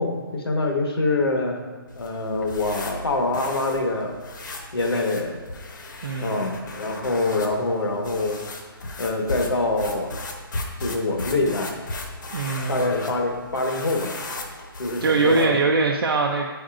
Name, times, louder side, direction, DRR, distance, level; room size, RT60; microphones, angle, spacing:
voice 1, 0.0-1.6 1.9-4.1 4.7-5.4 6.2-8.4 9.0-10.2 10.8-11.7 12.6-14.2 14.8-15.6, left 2 dB, 85° left, 2 dB, 1.3 m, -25 dB
sound 1, 1.9-15.7, left 2 dB, 55° left, 0.9 m, -36 dB
voice 2, 6.0-6.5 12.3-12.9 15.0-16.6, right 3 dB, 75° right, 0 dB, 0.6 m, -22 dB
8.9 x 5.2 x 2.5 m, 1.4 s
hypercardioid pair, 170°, 12 cm